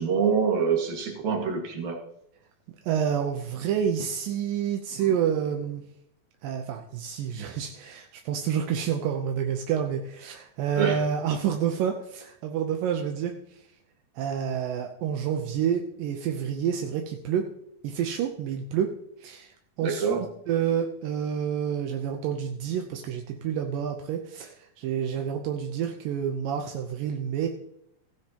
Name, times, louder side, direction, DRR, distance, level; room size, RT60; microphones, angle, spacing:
voice 1, 0.0-2.0 10.7-11.0 19.8-20.2, right 6 dB, 55° right, 1 dB, 2.9 m, -25 dB
voice 2, 2.9-5.8 6.4-13.3 14.2-17.4 17.8-18.9 19.2-19.5 19.8-27.5, right 8 dB, 75° right, 3 dB, 2.1 m, -28 dB
16.0 x 9.5 x 2.9 m, 0.76 s
omnidirectional pair, 4.7 m